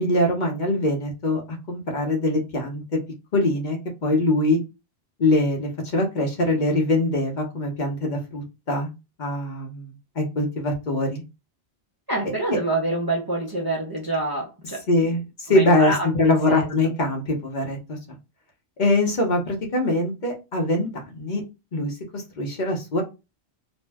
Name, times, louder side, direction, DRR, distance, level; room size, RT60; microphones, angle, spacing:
voice 1, 0.0-3.0 3.3-4.6 5.2-8.9 9.2-9.9 10.2-11.2 14.9-18.2 18.8-21.4 21.7-23.0, left 1 dB, 50° left, 0.8 m, -23 dB
voice 2, 12.1-14.8 15.5-16.9, right 2 dB, 30° right, 0.5 m, -27 dB
2.6 x 2.1 x 3.3 m
omnidirectional pair, 1.1 m